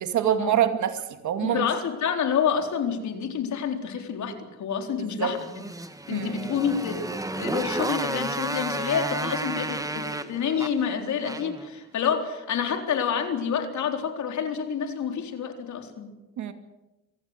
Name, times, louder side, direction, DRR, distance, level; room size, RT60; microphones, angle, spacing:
voice 1, 0.0-1.7 5.0-5.3 6.1-6.4 16.4-16.5, right 10 dB, 70° right, 8 dB, 2.5 m, -26 dB
voice 2, 1.4-5.4 6.1-7.0 7.4-16.1, left 7 dB, 70° left, 5 dB, 4.1 m, -28 dB
Motorcycle, 5.3-11.7, right 2 dB, 10° right, 1.7 m, -32 dB
26.0 x 16.5 x 8.1 m, 1.0 s
cardioid pair, 90°, 30 cm